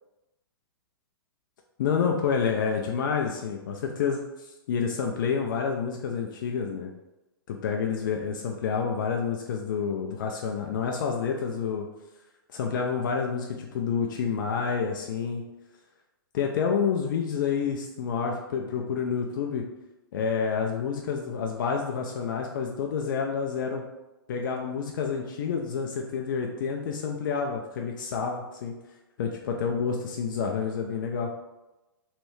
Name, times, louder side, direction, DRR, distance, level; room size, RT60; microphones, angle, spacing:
voice 1, 1.8-6.9 7.5-11.9 12.5-15.4 16.3-19.7 20.1-23.8 24.3-28.7 29.2-31.3, left 6 dB, 55° left, 1 dB, 0.4 m, -29 dB
3.2 x 2.5 x 3.1 m, 1.0 s
figure-of-eight pair, 110°, 13 cm